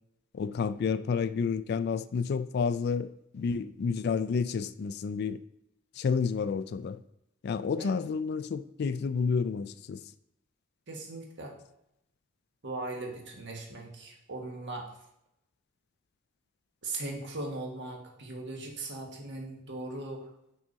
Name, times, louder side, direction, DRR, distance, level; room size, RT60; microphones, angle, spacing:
voice 1, 0.3-5.4 6.0-7.0 7.4-10.0, left 5 dB, 50° left, 0.3 m, -30 dB
voice 2, 10.9-11.5 12.6-14.9 16.8-20.3, right 2 dB, 60° right, 1.5 m, -39 dB
6.1 x 4.1 x 5.3 m
head